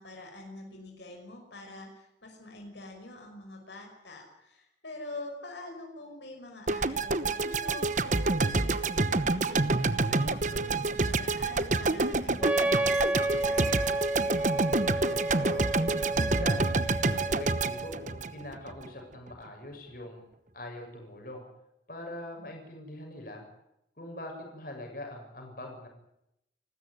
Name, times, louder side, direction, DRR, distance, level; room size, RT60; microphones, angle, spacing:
voice 1, 0.0-13.7 22.4-22.5, left 2 dB, 85° left, 2 dB, 5.9 m, -45 dB
sound 1, 6.7-18.9, right 3 dB, 45° right, 1.0 m, -28 dB
Wind instrument woodwind instrument, 12.4-18.0, right 1 dB, 10° right, 0.8 m, -31 dB
voice 2, 15.0-15.6 16.1-20.2 20.5-21.4 21.9-23.4 24.0-25.9, left 1 dB, 55° left, 2 dB, 7.1 m, -43 dB
29.5 x 13.5 x 10.0 m, 0.82 s
head